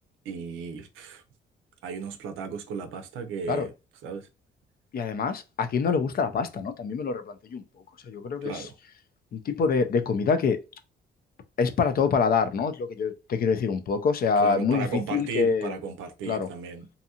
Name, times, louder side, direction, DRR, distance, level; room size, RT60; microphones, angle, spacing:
voice 1, 0.2-1.2 1.8-3.7 4.0-4.3 8.4-8.8 14.4-16.9, right 5 dB, 90° right, 0.5 m, -35 dB
voice 2, 4.9-7.6 8.1-8.6 9.3-10.6 11.6-15.7 16.3-16.5, left 5 dB, 50° left, 0.5 m, -25 dB
2.7 x 2.3 x 2.7 m
cardioid pair, 90°, 20 cm